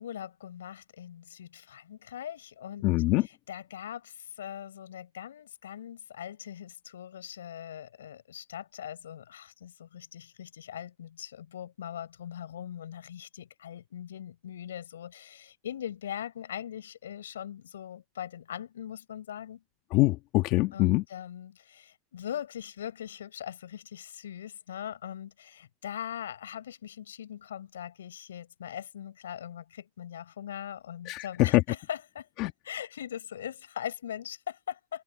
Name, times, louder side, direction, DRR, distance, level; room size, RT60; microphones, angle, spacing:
voice 1, 0.0-2.9 3.5-19.6 20.7-32.3 32.6-35.0, left 10 dB, 90° left, 7.2 m, -41 dB
voice 2, 2.8-3.3 19.9-21.0 31.1-31.6 32.4-32.5, left 20 dB, 55° left, 1.8 m, -24 dB
open air
hypercardioid pair, 110°, 0 cm